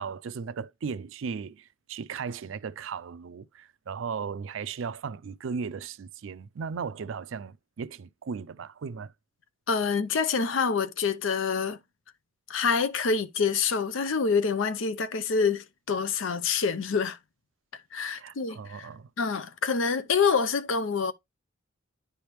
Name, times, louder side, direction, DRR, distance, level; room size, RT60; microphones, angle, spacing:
voice 1, 0.0-9.1 18.2-19.1, right 6 dB, 75° right, 0.4 m, -36 dB
voice 2, 9.7-11.8 12.5-17.2 17.9-18.9 19.2-21.1, left 5 dB, 80° left, 0.6 m, -26 dB
10.0 x 3.4 x 3.0 m
head